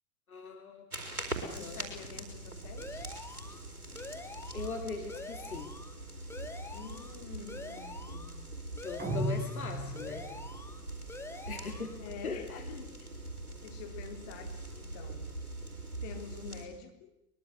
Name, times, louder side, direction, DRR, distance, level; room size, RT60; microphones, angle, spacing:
voice 1, 0.3-1.1 1.4-1.9 4.5-5.7 8.8-10.3 11.5-12.0 12.2-12.6, left 4 dB, 75° left, 5 dB, 2.8 m, -40 dB
sound 1, 0.9-16.7, right 2 dB, 85° right, 4.5 m, -43 dB
voice 2, 1.4-3.1 6.7-8.4 12.0-13.1 13.6-15.3 16.0-17.1, left 7 dB, 50° left, 5 dB, 3.8 m, -47 dB
sound 2, 2.8-3.6 4.0-4.8 5.1-5.9 6.3-7.2 7.5-8.3 8.8-9.6 10.0-10.8 11.1-11.9, left 2 dB, 5° left, 2.1 m, -46 dB
sound 3, 9.0-10.5, right 1 dB, 25° right, 4.9 m, -35 dB
23.5 x 21.5 x 8.0 m, 0.83 s
figure-of-eight pair, 85°, 43 cm